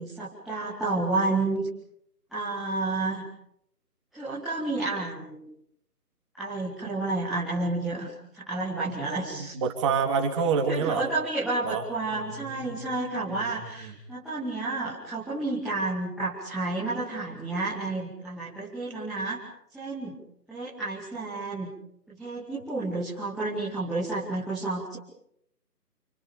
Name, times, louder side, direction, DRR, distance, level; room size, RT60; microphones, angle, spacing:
voice 1, 0.0-1.7 2.3-3.2 4.1-5.4 6.3-9.5 10.7-19.4 19.7-20.2 20.5-21.7 22.1-25.0, right 2 dB, ahead, -12 dB, 1.1 m, -30 dB
voice 2, 9.3-11.0 11.6-11.8 12.1-12.9 13.3-13.9, right 5 dB, 20° right, 3 dB, 3.4 m, -28 dB
29.0 x 28.0 x 5.2 m, 0.73 s
figure-of-eight pair, 160°, 48 cm